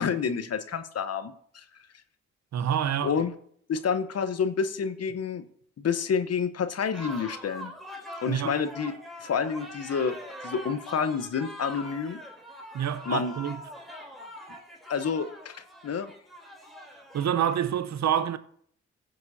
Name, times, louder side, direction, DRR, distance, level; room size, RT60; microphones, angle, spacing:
voice 1, 0.0-1.6 3.0-3.3 3.7-5.4 5.8-7.7 8.2-8.9 9.2-10.2 10.4-12.2 13.1-13.3 14.9-15.6 15.8-16.1, left 6 dB, 50° left, 1.0 m, -29 dB
voice 2, 2.5-3.1 8.3-8.6 12.7-13.6 17.1-18.4, right 9 dB, 60° right, 0.9 m, -27 dB
sound 1, 6.9-17.6, equal, ahead, 3.4 m, -43 dB
15.5 x 7.7 x 2.8 m
hypercardioid pair, 45°, 31 cm